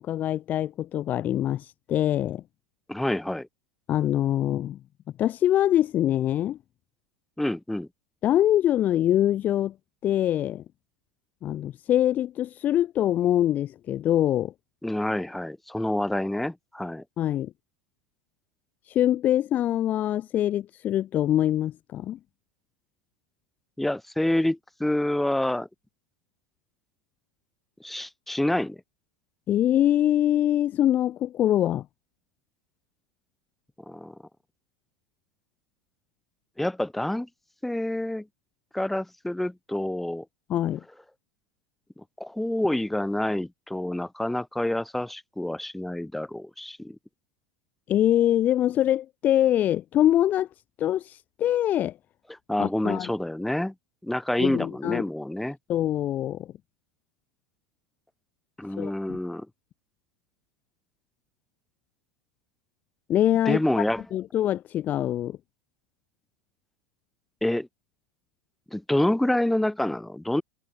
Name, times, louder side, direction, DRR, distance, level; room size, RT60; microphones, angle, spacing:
voice 1, 0.0-2.4 3.9-4.8 5.2-6.6 8.2-9.7 10.0-10.6 11.4-14.5 17.2-17.5 18.9-22.2 29.5-31.8 40.5-40.8 47.9-50.5 50.8-51.9 52.6-53.1 54.4-55.0 55.7-56.5 58.8-59.2 63.1-63.9 64.1-65.4, left 12 dB, 30° left, 1.3 m, -24 dB
voice 2, 2.9-3.5 7.4-7.9 14.8-17.0 23.8-25.7 27.8-28.8 33.9-34.1 36.6-37.3 37.6-38.3 38.7-40.2 42.0-47.0 52.5-53.7 54.0-55.6 58.6-59.5 63.5-64.0 67.4-67.7 68.7-70.4, left 1 dB, 5° left, 4.2 m, -27 dB
supercardioid pair, 145°, 6 cm